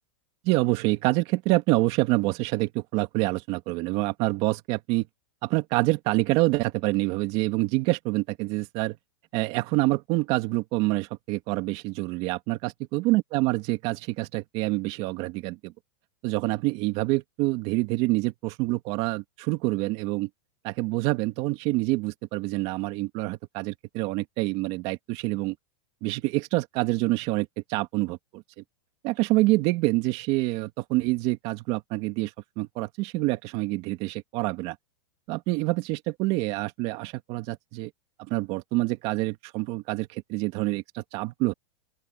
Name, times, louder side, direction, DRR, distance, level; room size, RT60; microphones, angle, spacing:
voice 1, 0.4-5.1 5.4-9.0 9.3-15.7 16.2-20.3 20.6-25.6 26.0-28.4 29.0-32.3 32.6-34.8 35.3-37.9 38.2-41.5, right 20 dB, 40° right, 2.1 m, -26 dB
open air
supercardioid pair, 150°, 15 cm